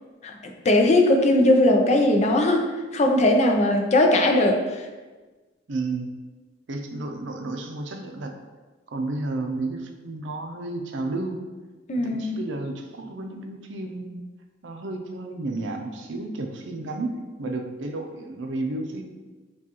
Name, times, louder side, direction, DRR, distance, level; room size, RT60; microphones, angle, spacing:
voice 1, 0.6-2.7 2.9-4.9 11.9-12.4, left 1 dB, 35° left, 3 dB, 0.5 m, -19 dB
voice 2, 5.7-6.1 6.7-8.3 8.9-11.4 12.0-14.2 14.6-19.0, right 2 dB, 75° right, 4 dB, 0.6 m, -32 dB
7.1 x 2.4 x 2.9 m, 1.3 s
head